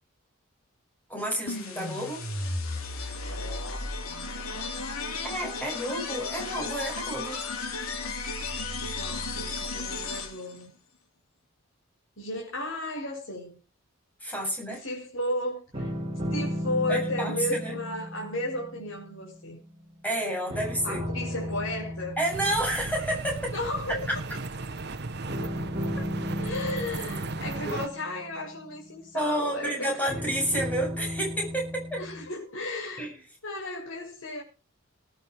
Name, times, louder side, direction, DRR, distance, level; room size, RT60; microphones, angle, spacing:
voice 1, 1.1-2.2 5.2-7.4 14.2-14.8 16.9-17.8 20.0-21.0 22.2-23.5 24.1-24.2 29.1-32.0 33.0-33.2, right 1 dB, 10° left, 7.4 m, -30 dB
sound 1, 1.5-10.6, left 3 dB, 90° left, 3.1 m, -34 dB
voice 2, 3.2-3.7 8.9-10.7 12.2-13.6 14.7-15.9 16.3-19.6 20.8-22.2 23.5-24.1 26.4-30.2 32.0-33.1 33.4-34.4, left 1 dB, 70° left, 6.4 m, -34 dB
sound 2, 15.7-20.1 20.5-23.8 25.3-29.3 30.1-32.3, equal, 25° right, 3.4 m, -35 dB
sound 3, 22.3-27.9, right 3 dB, 50° right, 1.2 m, -36 dB
19.0 x 11.0 x 4.7 m
head